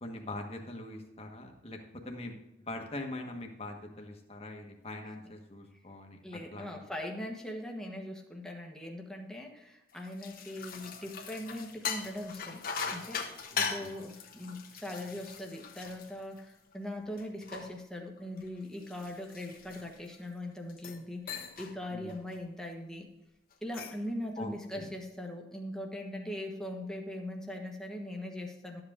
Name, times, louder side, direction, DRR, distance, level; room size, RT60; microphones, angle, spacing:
voice 1, 0.0-1.8 2.0-6.7 13.5-13.9 21.9-22.2 24.4-24.9, left 2 dB, 30° left, 2 dB, 1.4 m, -43 dB
voice 2, 6.2-12.6 12.9-23.1 23.6-28.8, left 1 dB, 5° left, 1 dB, 1.3 m, -40 dB
sound 1, 9.9-16.7 17.2-20.2 20.7-21.0 21.3-21.7 22.1-22.4 23.5-24.1, left 6 dB, 50° left, 1.1 m, -40 dB
12.5 x 7.8 x 3.7 m, 0.94 s
head